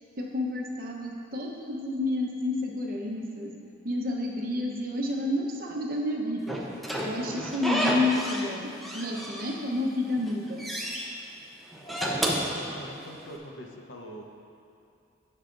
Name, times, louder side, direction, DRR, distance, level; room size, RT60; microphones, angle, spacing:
voice 1, 0.2-3.5 3.8-6.6 7.0-10.7, left 2 dB, 45° right, 0 dB, 0.9 m, -30 dB
Slam / Squeak, 6.5-8.5 8.8-9.8 10.2-11.1 11.7-13.3, equal, ahead, 0.7 m, -31 dB
voice 2, 12.3-14.2, equal, 70° left, 1 dB, 0.9 m, -43 dB
17.0 x 5.6 x 2.6 m, 2.6 s
head